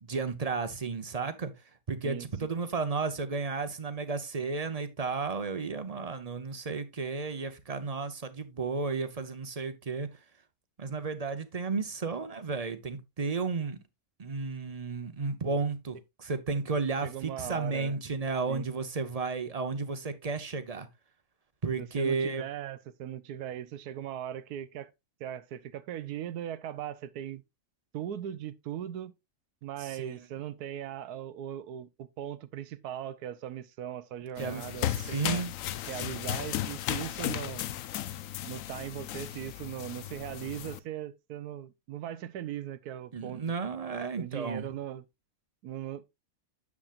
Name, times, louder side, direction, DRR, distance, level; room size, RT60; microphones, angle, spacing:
voice 1, 0.0-1.5 1.9-10.1 10.8-13.8 14.2-20.9 21.6-22.4 29.8-30.2 34.4-35.5 43.1-44.7, right 4 dB, 30° right, 0.7 m, -33 dB
voice 2, 2.0-2.5 17.0-18.0 18.5-18.7 21.8-24.9 25.2-27.4 27.9-29.1 29.6-35.4 35.9-37.7 38.4-43.5 44.2-45.0 45.6-46.1, right 11 dB, 80° right, 1.2 m, -39 dB
sound 1, 34.4-40.8, left 12 dB, 65° left, 0.9 m, -35 dB
9.7 x 7.2 x 2.5 m
omnidirectional pair, 1.7 m